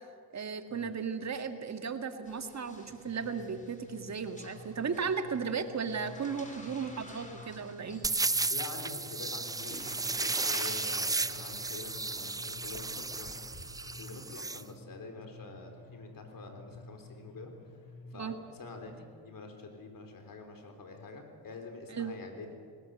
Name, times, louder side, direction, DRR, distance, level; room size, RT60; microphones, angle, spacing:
voice 1, 0.3-8.0 18.1-18.4 21.9-22.1, right 6 dB, 40° right, 8 dB, 1.9 m, -35 dB
sound 1, 2.2-14.2, left 1 dB, 15° left, 4.1 m, -52 dB
sound 2, 2.9-18.9, left 2 dB, 85° left, 3.7 m, -52 dB
voice 2, 6.2-6.6 8.5-13.5 14.0-17.5 18.1-22.5, left 3 dB, 50° left, 5 dB, 3.9 m, -46 dB
sound 3, 8.0-14.6, right 3 dB, 10° right, 0.4 m, -34 dB
19.0 x 18.0 x 7.8 m, 2.2 s
supercardioid pair, 60°, 43 cm